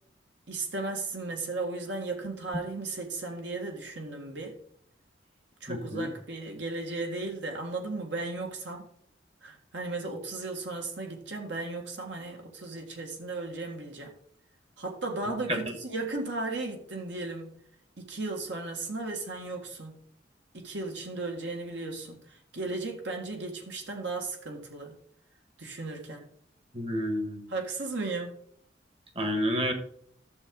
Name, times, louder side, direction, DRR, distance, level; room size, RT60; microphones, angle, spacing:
voice 1, 0.5-4.6 5.6-8.9 9.4-14.1 14.8-17.5 18.0-20.0 20.5-25.0 25.6-26.3 27.5-28.4, right 3 dB, 70° right, 2 dB, 1.7 m, -35 dB
voice 2, 5.7-6.1 15.5-15.7 26.7-27.5 29.1-29.7, equal, 30° right, 6 dB, 1.4 m, -30 dB
11.5 x 7.0 x 3.8 m, 0.63 s
head